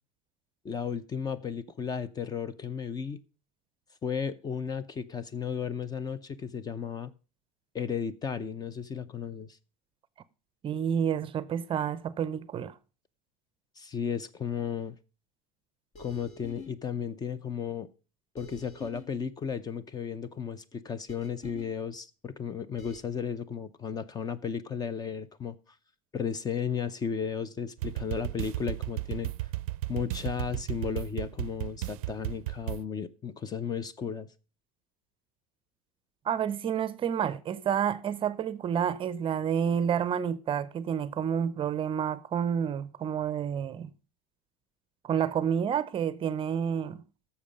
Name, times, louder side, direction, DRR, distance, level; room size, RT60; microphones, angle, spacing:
voice 1, 0.6-3.2 4.0-7.1 7.7-9.6 13.8-15.0 16.0-17.9 18.3-25.6 26.1-29.3 29.9-34.3, left 7 dB, 20° left, 0.6 m, -34 dB
voice 2, 10.6-12.7 36.2-43.9 45.0-47.0, right 8 dB, 30° right, 0.6 m, -29 dB
sound 1, 15.9-16.7 18.4-19.0 21.1-21.7 22.8-23.0, left 3 dB, 40° left, 2.3 m, -46 dB
sound 2, 27.8-32.8, right 17 dB, 85° right, 0.4 m, -34 dB
11.0 x 7.1 x 5.1 m
supercardioid pair, 130°, 18 cm